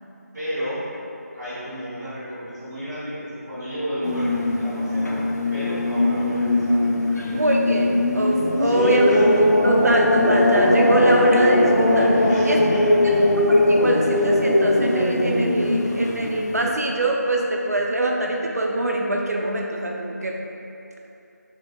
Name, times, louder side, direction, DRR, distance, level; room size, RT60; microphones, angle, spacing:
voice 1, 0.3-0.8 1.3-5.2 5.5-6.8 7.1-7.4 8.6-8.9 12.3-13.2, equal, 5° right, -19 dB, 0.5 m, -32 dB
sound 1, 4.0-16.7, left 1 dB, 75° left, 0.4 m, -20 dB
voice 2, 7.3-12.6 13.5-20.4, right 1 dB, 65° right, 0 dB, 0.4 m, -23 dB
3.5 x 2.1 x 3.4 m, 2.8 s
figure-of-eight pair, 165°, 9 cm